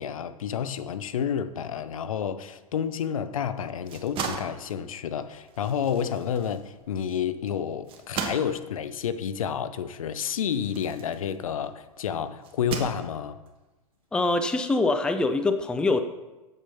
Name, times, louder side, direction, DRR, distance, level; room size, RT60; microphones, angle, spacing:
voice 1, 0.0-13.4, left 8 dB, 65° left, 0.7 m, -30 dB
sound 1, 3.7-11.8 12.4-13.5, right 6 dB, 30° right, 1.3 m, -38 dB
voice 2, 14.1-16.0, left 2 dB, 5° left, 0.5 m, -24 dB
7.4 x 7.2 x 5.6 m
figure-of-eight pair, 105°, 19 cm